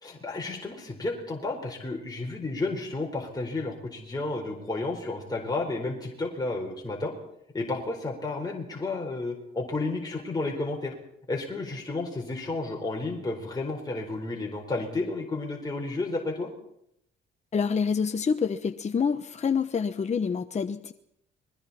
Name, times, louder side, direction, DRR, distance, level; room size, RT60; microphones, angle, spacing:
voice 1, 0.0-7.1 7.5-10.9 11.3-16.5, left 2 dB, 20° left, -1 dB, 4.5 m, -32 dB
voice 2, 17.5-20.9, left 6 dB, 35° left, 7 dB, 1.0 m, -27 dB
29.5 x 21.5 x 4.3 m, 0.76 s
cardioid pair, 90°, 20 cm